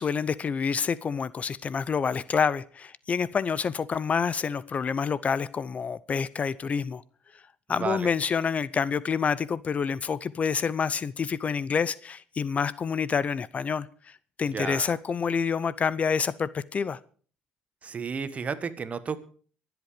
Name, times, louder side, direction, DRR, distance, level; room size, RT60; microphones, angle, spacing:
voice 1, 0.0-7.0 7.7-13.9 14.4-17.0, left 6 dB, 40° left, 0.6 m, -27 dB
voice 2, 7.7-8.1 14.5-15.0 17.8-19.2, right 5 dB, 40° right, 1.5 m, -32 dB
24.0 x 8.1 x 5.0 m
supercardioid pair, 75°, 4 cm